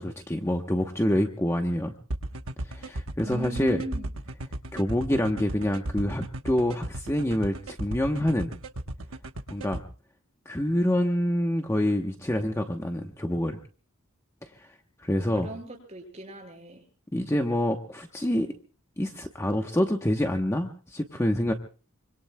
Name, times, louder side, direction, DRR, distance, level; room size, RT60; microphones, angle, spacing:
voice 1, 0.0-1.9 2.7-3.8 4.7-8.5 9.5-9.8 10.5-13.6 15.0-15.5 17.1-18.5 19.0-21.5, left 1 dB, 15° left, 4 dB, 0.9 m, -26 dB
sound 1, 2.1-9.8, right 1 dB, 65° right, 1.1 m, -35 dB
voice 2, 3.2-4.1 15.3-16.8, right 1 dB, 30° right, 3 dB, 5.3 m, -37 dB
25.5 x 25.0 x 2.2 m, 0.38 s
head